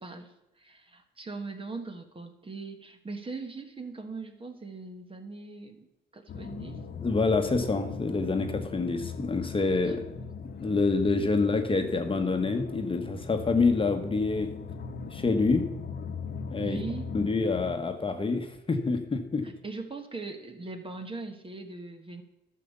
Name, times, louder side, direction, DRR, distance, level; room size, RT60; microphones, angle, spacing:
voice 1, 0.0-5.9 6.1-6.8 9.8-10.0 16.6-17.1 19.4-22.2, right 3 dB, 25° right, 6 dB, 1.5 m, -40 dB
sound 1, 6.3-17.8, left 5 dB, 55° left, 1.1 m, -39 dB
voice 2, 7.0-10.1 10.4-14.6 15.1-15.7 16.5-16.8 17.1-19.5, left 3 dB, 25° left, 6 dB, 1.2 m, -27 dB
11.0 x 6.6 x 6.8 m, 0.94 s
cardioid pair, 90°, 20 cm